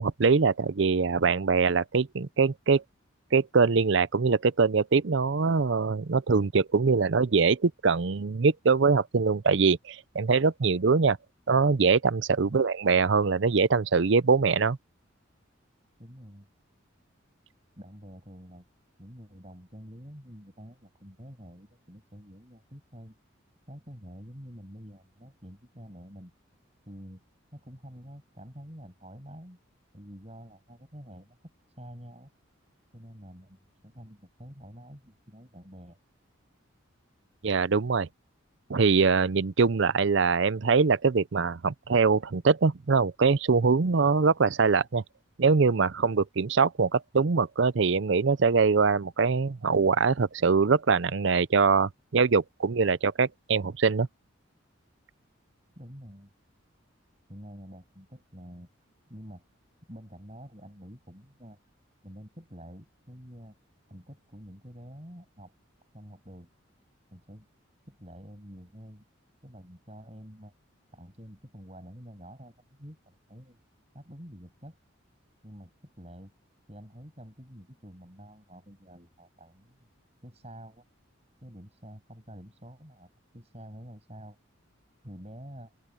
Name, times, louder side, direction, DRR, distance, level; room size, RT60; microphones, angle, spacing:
voice 1, 0.0-2.8 3.3-11.2 11.5-14.8 37.4-38.1 38.7-45.0 45.4-54.1, right 4 dB, 60° right, 0.6 m, -23 dB
voice 2, 16.0-16.5 17.8-18.7 19.0-23.1 23.7-26.3 26.9-27.2 27.5-29.6 29.9-31.4 31.8-32.3 32.9-36.0 55.8-56.3 57.3-58.7 59.1-59.4 59.9-61.6 62.0-63.6 63.9-65.5 65.9-66.5 67.1-67.5 67.9-69.0 69.4-70.5 70.9-73.6 73.9-74.8 75.4-76.3 76.7-79.9 80.2-80.8 81.4-84.4 85.0-85.7, equal, 30° right, 7.5 m, -47 dB
open air
head